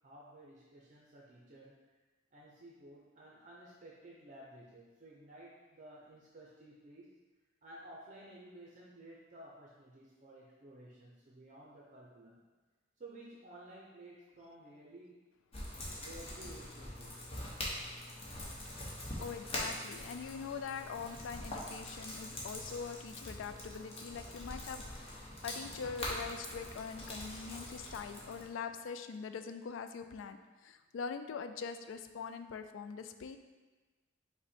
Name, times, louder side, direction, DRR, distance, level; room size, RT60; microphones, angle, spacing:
voice 1, 0.0-1.8 2.3-7.1 7.6-12.4 13.0-15.2 16.0-17.2, right 1 dB, 40° right, -4 dB, 0.5 m, -54 dB
sound 1, 15.5-28.4, left 1 dB, 30° left, 0.9 m, -43 dB
voice 2, 19.2-24.9 25.1-33.4, left 6 dB, 75° left, 9 dB, 0.3 m, -43 dB
5.4 x 2.1 x 4.2 m, 1.3 s
head